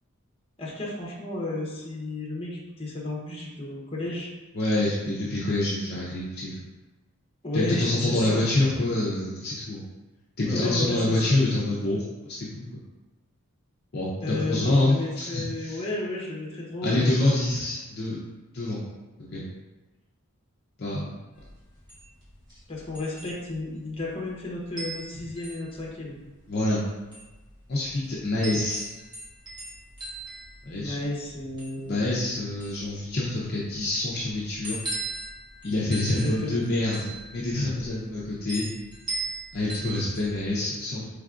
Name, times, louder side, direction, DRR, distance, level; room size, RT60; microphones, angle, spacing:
voice 1, 0.6-4.3 7.4-8.4 10.4-11.3 14.2-17.4 22.7-26.2 30.7-32.0 36.0-36.6, left 2 dB, 25° left, -4 dB, 0.9 m, -33 dB
voice 2, 4.5-6.6 7.5-9.8 10.4-12.7 13.9-15.8 16.8-18.2 18.5-18.8 19.3-19.5 20.8-21.2 26.5-26.8 27.7-28.9 30.6-31.0 31.8-34.8 35.6-38.7 39.5-41.1, left 2 dB, 45° left, -6 dB, 0.6 m, -26 dB
sound 1, 21.3-40.5, right 2 dB, 20° right, 1.1 m, -39 dB
4.8 x 3.3 x 2.4 m, 1.2 s
head